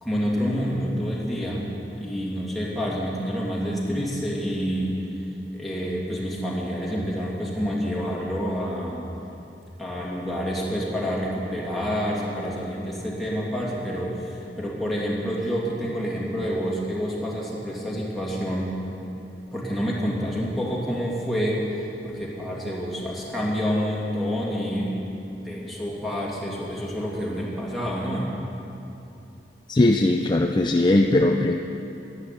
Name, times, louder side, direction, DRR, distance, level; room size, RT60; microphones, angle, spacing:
voice 1, 0.0-1.7 2.0-4.9 5.5-9.1 9.8-18.8 19.5-25.0 25.3-28.3, equal, ahead, -6 dB, 2.7 m, -28 dB
voice 2, 29.7-31.5, left 2 dB, 25° left, 3 dB, 0.5 m, -19 dB
12.0 x 11.5 x 8.5 m, 2.9 s
head